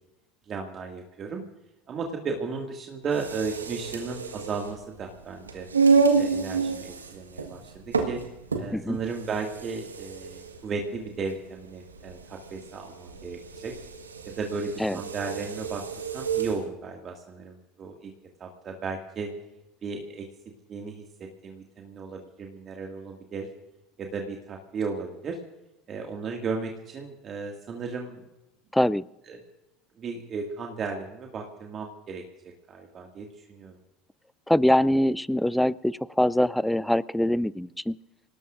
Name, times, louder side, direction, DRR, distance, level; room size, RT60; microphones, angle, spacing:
voice 1, 0.5-1.4 1.9-5.7 6.2-8.2 8.6-13.8 14.3-15.8 16.1-18.1 18.4-19.3 19.8-20.3 20.7-23.5 24.0-25.4 25.9-28.2 29.3-29.4 30.0-33.8, right 4 dB, 40° right, 1 dB, 2.1 m, -35 dB
sound 1, 3.0-16.6, right 5 dB, 90° right, 1.5 m, -29 dB
voice 2, 28.7-29.0 34.5-38.0, left 1 dB, 5° left, 21 dB, 0.4 m, -23 dB
28.0 x 18.0 x 2.6 m, 0.94 s
hypercardioid pair, 75°, 0 cm